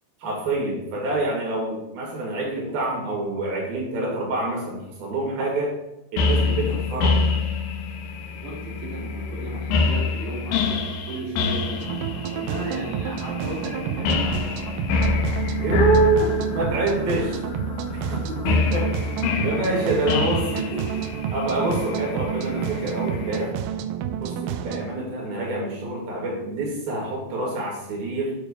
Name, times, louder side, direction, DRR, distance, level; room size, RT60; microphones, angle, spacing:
voice 1, 0.2-5.7 6.1-7.2 15.6-17.4 17.9-19.1 19.4-23.5 24.2-28.4, right 2 dB, 65° right, -2 dB, 4.0 m, -26 dB
sound 1, 6.2-23.4, left 4 dB, 75° left, 2.1 m, -26 dB
voice 2, 8.2-14.8 19.6-20.0, right 2 dB, 40° right, -3 dB, 1.4 m, -36 dB
sound 2, 11.8-24.9, right 9 dB, 85° right, 1.9 m, -30 dB
9.1 x 3.2 x 6.5 m, 0.91 s
omnidirectional pair, 4.5 m